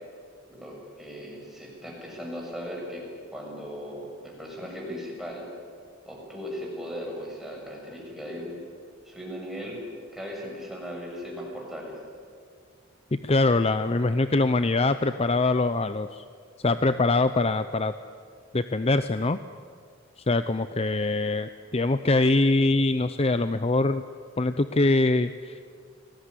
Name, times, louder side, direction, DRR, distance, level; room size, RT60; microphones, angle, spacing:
voice 1, 0.5-3.0 3.3-5.5 6.1-8.6 9.1-9.8 10.1-12.0, equal, ahead, -2 dB, 7.3 m, -37 dB
voice 2, 13.1-16.2 16.6-17.9 18.5-19.4 20.3-24.0 24.4-25.6, left 2 dB, 30° left, 11 dB, 0.7 m, -23 dB
29.0 x 19.5 x 9.9 m, 2.1 s
head